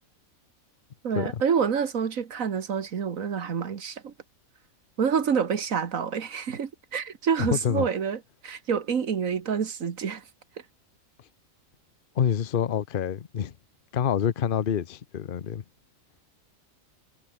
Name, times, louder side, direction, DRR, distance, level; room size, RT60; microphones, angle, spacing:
voice 1, 1.0-4.1 5.0-10.2, right 7 dB, 80° right, 1.8 m, -27 dB
voice 2, 7.4-7.9 12.2-13.5 13.9-15.6, left 8 dB, 45° left, 0.9 m, -27 dB
omnidirectional pair, 1.4 m